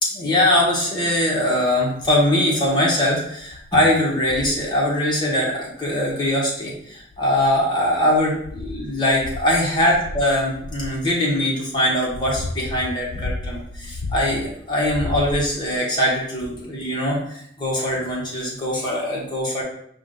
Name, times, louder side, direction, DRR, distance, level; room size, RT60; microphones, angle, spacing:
voice 1, 0.0-19.6, left 1 dB, 25° left, -5 dB, 1.3 m, -22 dB
sound 1, 2.0-2.3 2.9-3.0 3.5-3.7 4.2-4.7 6.1-6.2 6.9-7.6 8.1-11.0 11.7-14.5 14.8-15.8 16.6-16.7, left 2 dB, 75° left, 0.4 m, -33 dB
5.0 x 2.5 x 3.9 m, 0.70 s
head